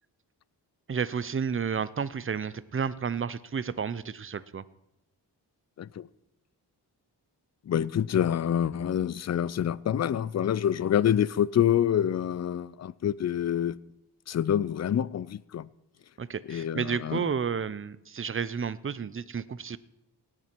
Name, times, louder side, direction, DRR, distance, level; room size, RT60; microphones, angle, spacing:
voice 1, 0.9-4.6 16.2-19.8, right 6 dB, 30° right, 17 dB, 0.5 m, -31 dB
voice 2, 7.7-13.8 14.3-15.7 16.5-17.3, left 9 dB, 40° left, 21 dB, 0.4 m, -27 dB
18.0 x 8.7 x 4.5 m, 0.86 s
wide cardioid pair, 75°, 41 cm